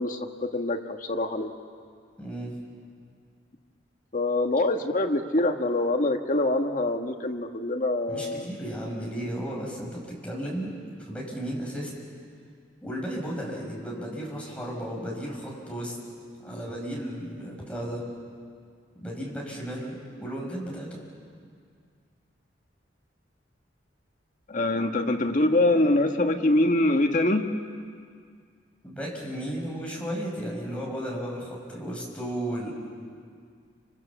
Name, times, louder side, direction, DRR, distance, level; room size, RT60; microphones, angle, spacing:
voice 1, 0.0-1.5 4.1-8.5 24.5-27.5, left 2 dB, 45° left, 4 dB, 1.5 m, -24 dB
voice 2, 2.2-2.6 8.1-10.7 11.1-12.0 12.8-16.0 16.4-18.0 19.0-20.9 28.8-32.7, equal, 5° left, -3 dB, 6.1 m, -34 dB
29.5 x 26.0 x 7.2 m, 2.2 s
head